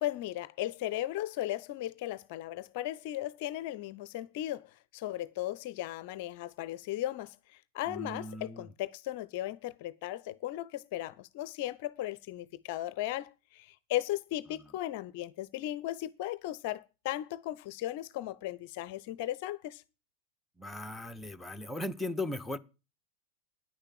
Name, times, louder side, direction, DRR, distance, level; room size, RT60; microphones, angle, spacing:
voice 1, 0.0-19.8, left 14 dB, 50° left, 0.5 m, -36 dB
voice 2, 7.9-8.6 20.6-22.6, left 2 dB, 5° left, 0.8 m, -37 dB
10.0 x 6.6 x 7.3 m
figure-of-eight pair, 90°, 0 cm